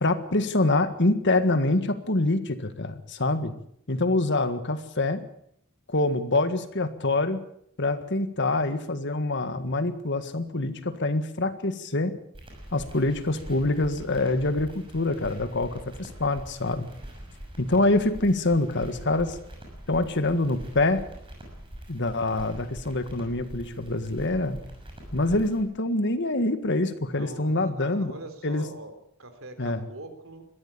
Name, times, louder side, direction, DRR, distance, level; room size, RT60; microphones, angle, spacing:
voice 1, 0.0-3.5 3.9-5.2 5.9-7.4 7.8-12.2 12.7-16.9 17.6-19.4 19.9-21.0 21.9-24.6 25.1-28.1 28.4-28.6 29.6-29.8, left 2 dB, 55° left, 10 dB, 1.7 m, -25 dB
sound 1, 12.3-25.6, equal, 25° right, 6.2 m, -43 dB
voice 2, 27.2-28.9 29.2-30.5, right 2 dB, 70° right, 8 dB, 3.6 m, -42 dB
21.5 x 15.0 x 8.5 m, 0.71 s
head